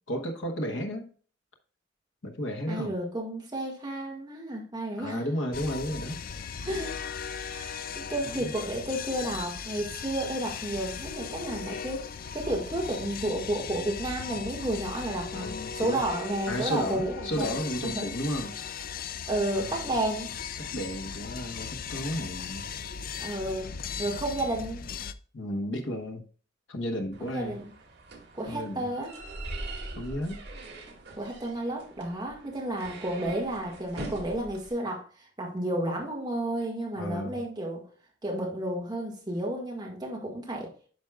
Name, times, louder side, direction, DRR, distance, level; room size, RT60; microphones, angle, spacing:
voice 1, 0.1-1.1 2.2-2.9 4.9-6.2 8.2-8.5 15.3-16.0 16.5-18.6 19.6-19.9 20.6-22.7 25.3-26.2 26.7-27.6 28.5-28.9 30.0-30.4 37.0-37.4, equal, 80° left, 3 dB, 1.1 m, -33 dB
voice 2, 2.7-5.3 6.6-6.9 7.4-17.6 17.8-18.1 19.3-20.3 23.2-23.7 24.0-24.8 27.2-27.7 28.3-29.1 31.2-37.8 38.2-40.7, right 1 dB, 20° right, -1 dB, 1.7 m, -32 dB
sound 1, 5.5-25.1, left 6 dB, 50° left, 0.4 m, -38 dB
sound 2, 27.1-34.7, right 2 dB, 60° right, 2.2 m, -42 dB
9.4 x 6.0 x 2.3 m, 0.41 s
head